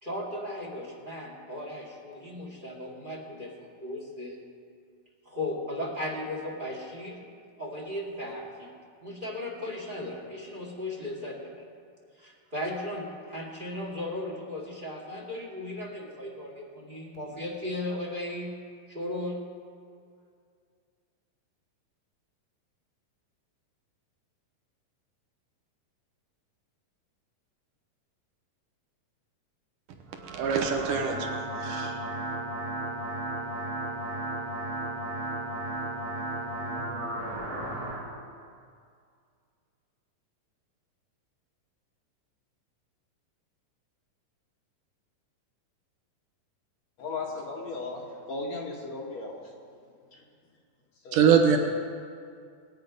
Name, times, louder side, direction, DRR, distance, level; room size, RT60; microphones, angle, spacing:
voice 1, 0.0-4.4 5.3-7.2 7.6-8.7 9.0-11.6 12.2-18.5 18.9-19.4, left 1 dB, 15° right, 0 dB, 2.0 m, -36 dB
sound 1, 30.1-38.0, right 1 dB, 55° right, 4.0 m, -34 dB
voice 2, 30.3-31.3 31.6-32.0 51.1-51.6, right 7 dB, 75° right, 4 dB, 2.4 m, -23 dB
voice 3, 47.0-49.5 50.1-50.3 51.0-51.3, left 3 dB, 60° left, -1 dB, 2.2 m, -36 dB
20.5 x 9.1 x 5.3 m, 2.2 s
omnidirectional pair, 4.1 m